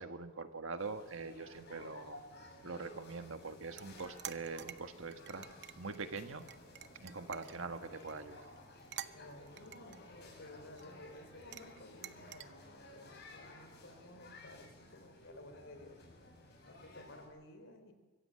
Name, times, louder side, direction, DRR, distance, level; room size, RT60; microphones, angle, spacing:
voice 1, 0.0-2.2 2.6-5.5 5.8-6.4 7.0-8.5, right 4 dB, 85° right, 7 dB, 1.5 m, -43 dB
sound 1, 0.8-17.3, left 2 dB, 55° left, 7.4 m, -56 dB
sound 2, 3.7-12.4, right 11 dB, 60° right, 0.8 m, -52 dB
voice 2, 9.1-16.0 16.6-17.9, left 1 dB, 75° left, 8 dB, 3.9 m, -55 dB
24.5 x 15.5 x 7.7 m, 1.2 s
head